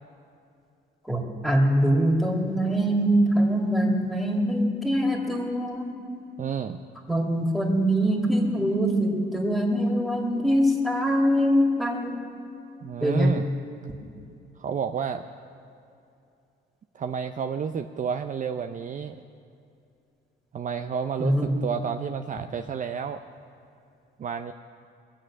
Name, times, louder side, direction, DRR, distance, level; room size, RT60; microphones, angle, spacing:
voice 1, 1.0-5.9 7.1-12.2 13.0-13.3 21.2-21.6, equal, ahead, 0 dB, 2.4 m, -23 dB
voice 2, 6.4-6.8 12.8-13.5 14.6-15.2 16.9-19.2 20.5-23.2 24.2-24.5, right 7 dB, 40° right, 7 dB, 0.5 m, -30 dB
21.0 x 7.6 x 6.2 m, 2.6 s
cardioid pair, 90°, 20 cm